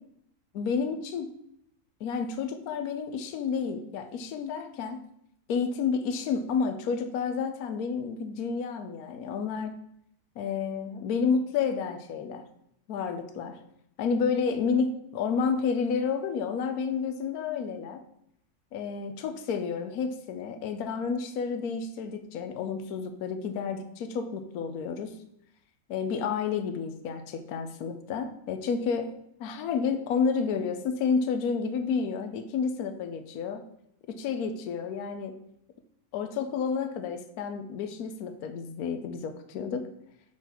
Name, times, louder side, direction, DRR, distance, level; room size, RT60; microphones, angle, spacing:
voice 1, 0.5-1.3 2.0-5.1 5.5-9.7 10.4-12.5 12.9-13.6 14.0-18.0 18.7-25.2 25.9-29.1 29.4-33.6 34.1-35.4 36.1-39.9, left 5 dB, 75° left, 8 dB, 1.2 m, -30 dB
9.1 x 4.0 x 4.3 m, 0.74 s
omnidirectional pair, 1.6 m